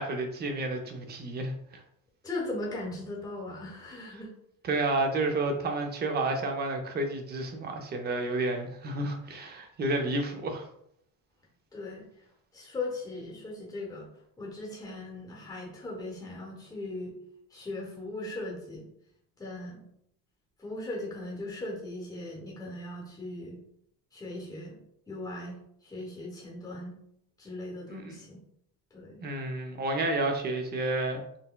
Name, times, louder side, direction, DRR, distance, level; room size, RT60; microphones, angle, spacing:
voice 1, 0.0-1.8 4.6-10.7 27.9-28.2 29.2-31.2, right 2 dB, 30° right, 5 dB, 0.5 m, -30 dB
voice 2, 2.2-4.3 11.7-12.0 12.5-14.1 14.4-17.1 17.5-18.9 19.4-19.8 20.6-23.6 24.1-24.8 25.1-27.0 27.4-28.4 28.9-29.2, left 2 dB, 10° left, -4 dB, 0.9 m, -38 dB
4.0 x 2.1 x 2.2 m, 0.71 s
cardioid pair, 120°, 33 cm